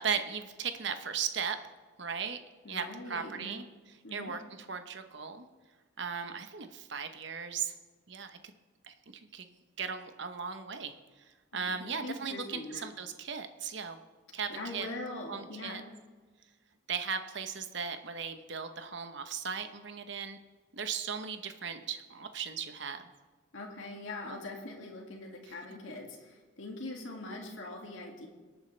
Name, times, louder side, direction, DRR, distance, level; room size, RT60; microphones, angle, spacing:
voice 1, 0.0-1.6 2.0-2.4 2.7-3.6 4.1-4.4 4.7-5.5 6.0-7.7 8.1-8.5 8.8-9.5 9.8-11.0 11.5-14.0 14.3-14.9 15.3-15.8 16.9-20.4 20.7-23.0 24.2-24.4 25.5-25.6, right 6 dB, 60° right, 8 dB, 0.9 m, -37 dB
voice 2, 2.6-3.6 4.0-4.3 11.5-12.9 14.5-15.8 23.5-28.3, left 2 dB, 70° left, 0 dB, 2.2 m, -42 dB
23.0 x 9.2 x 3.3 m, 1.4 s
head